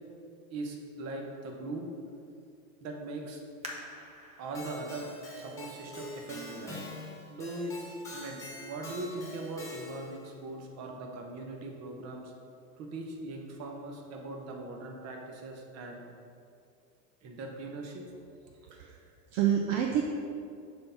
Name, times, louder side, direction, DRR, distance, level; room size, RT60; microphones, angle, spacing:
voice 1, 0.5-1.9 2.8-3.4 4.4-5.1 5.3-6.8 7.3-7.8 8.1-12.3 12.8-16.0 17.2-18.0, right 2 dB, 35° right, 1 dB, 1.0 m, -40 dB
sound 1, 3.6-7.0 7.6-7.7 8.3-8.7 9.1-9.2, right 1 dB, 15° right, 0.7 m, -49 dB
Keyboard (musical), 4.6-10.2, left 1 dB, 5° left, 1.5 m, -44 dB
voice 2, 18.6-20.0, right 9 dB, 55° right, 2 dB, 0.6 m, -29 dB
6.6 x 3.8 x 5.7 m, 2.4 s
supercardioid pair, 135°, 46 cm